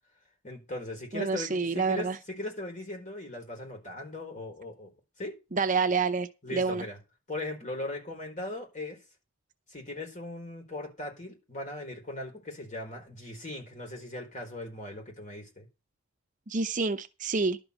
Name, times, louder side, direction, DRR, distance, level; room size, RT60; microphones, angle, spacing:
voice 1, 0.4-4.9 5.2-5.3 6.4-7.0 7.3-9.0 9.7-15.7, left 1 dB, 35° left, 4.4 m, -39 dB
voice 2, 1.1-2.2 5.5-6.9 16.5-17.6, right 4 dB, 40° right, 0.7 m, -28 dB
11.5 x 5.4 x 8.1 m
head